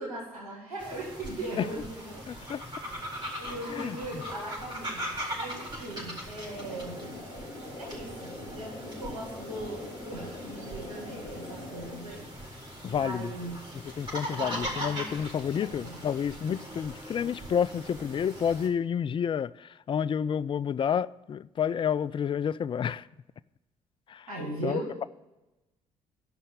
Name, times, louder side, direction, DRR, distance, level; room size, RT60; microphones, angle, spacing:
voice 1, 0.0-2.6 2.8-2.9 3.4-5.0 5.3-7.0 7.8-12.5 12.9-13.6 14.3-15.1 15.8-16.1 24.3-25.1, right 1 dB, 85° right, 2.0 m, -39 dB
sound 1, 0.8-18.7, equal, 25° right, 4.3 m, -40 dB
voice 2, 2.3-2.6 3.7-4.0 12.8-13.3 14.0-23.0 24.1-24.3 24.6-25.1, left 8 dB, 30° left, 0.4 m, -30 dB
sound 2, 6.5-12.0, left 2 dB, 60° left, 4.7 m, -43 dB
11.5 x 5.7 x 8.1 m
figure-of-eight pair, 45°, 18 cm